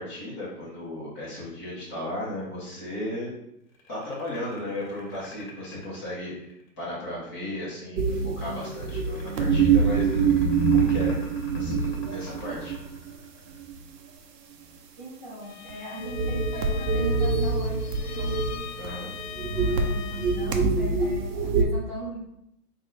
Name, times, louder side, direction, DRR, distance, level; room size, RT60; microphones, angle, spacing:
voice 1, 0.0-3.3 3.9-6.3 6.8-10.2 10.7-11.2 11.5-12.7 18.8-19.1, left 1 dB, 15° left, -8 dB, 0.7 m, -35 dB
sound 1, 3.7-6.9 8.3-13.8, left 1 dB, 55° left, 1.4 m, -47 dB
sound 2, 8.0-13.1 13.6-13.8 15.7-15.8 16.0-18.9 19.2-21.6, right 5 dB, 80° right, 0.7 m, -25 dB
voice 2, 15.0-18.4 19.5-22.2, right 1 dB, 30° right, -4 dB, 0.6 m, -39 dB
Bowed string instrument, 15.4-20.7, left 11 dB, 70° left, 0.5 m, -41 dB
3.5 x 2.2 x 3.7 m, 0.79 s
hypercardioid pair, 160°, 48 cm